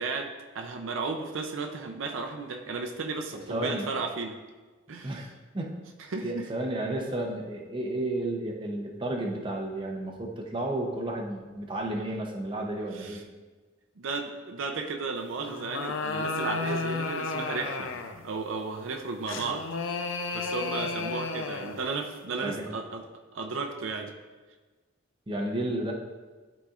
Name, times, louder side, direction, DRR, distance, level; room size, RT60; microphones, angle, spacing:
voice 1, 0.0-4.4 4.9-5.3 6.1-6.5 12.9-13.2 14.0-17.9 18.2-19.6 20.3-23.1 23.3-24.1, right 4 dB, 70° right, 3 dB, 0.5 m, -34 dB
voice 2, 3.5-3.9 5.0-5.3 5.5-5.8 6.2-13.2 22.4-22.7 25.3-25.9, right 1 dB, 25° right, 0 dB, 0.7 m, -32 dB
sound 1, 15.4-18.3 19.3-21.9, left 4 dB, 70° left, 0.5 m, -33 dB
11.0 x 4.0 x 2.5 m, 1.3 s
head